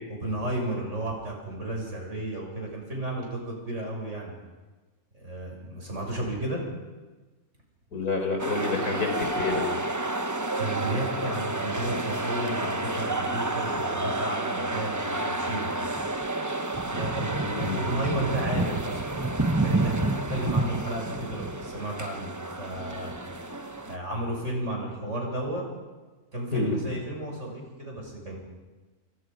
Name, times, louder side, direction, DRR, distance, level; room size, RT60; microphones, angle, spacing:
voice 1, 0.1-4.3 5.1-6.6 10.6-15.7 16.9-19.2 19.6-23.1 23.9-25.7 26.3-28.4, right 1 dB, 50° right, 0 dB, 7.2 m, -33 dB
voice 2, 7.9-9.6 17.4-17.8 26.5-26.8, left 3 dB, 80° left, 4 dB, 4.6 m, -28 dB
sound 1, 8.4-24.0, right 2 dB, 15° right, 0.9 m, -29 dB
28.0 x 27.5 x 5.4 m, 1.2 s
omnidirectional pair, 1.6 m